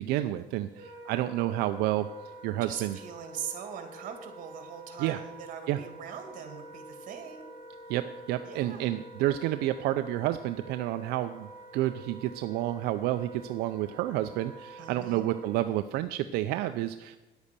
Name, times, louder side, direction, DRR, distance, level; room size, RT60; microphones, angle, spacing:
voice 1, 0.0-2.1 2.4-3.0 5.0-5.2 5.7-5.8 7.9-17.2, right 14 dB, 80° right, 10 dB, 0.5 m, -30 dB
Wind instrument woodwind instrument, 0.7-15.7, right 1 dB, 15° right, 4.4 m, -48 dB
voice 2, 2.6-7.4 8.4-8.9 14.8-15.2, right 8 dB, 55° right, 6 dB, 2.1 m, -41 dB
9.9 x 8.1 x 6.7 m, 1.1 s
cardioid pair, 120°, 16 cm